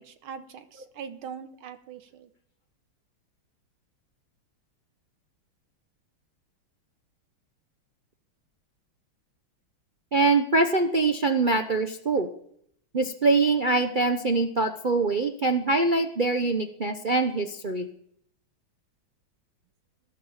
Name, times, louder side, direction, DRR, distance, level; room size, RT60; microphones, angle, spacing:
voice 1, 0.0-2.3, right 7 dB, 85° right, 10 dB, 2.1 m, -42 dB
voice 2, 10.1-12.3 12.9-17.9, right 3 dB, 55° right, 6 dB, 0.5 m, -24 dB
16.0 x 11.5 x 7.3 m, 0.71 s
omnidirectional pair, 2.3 m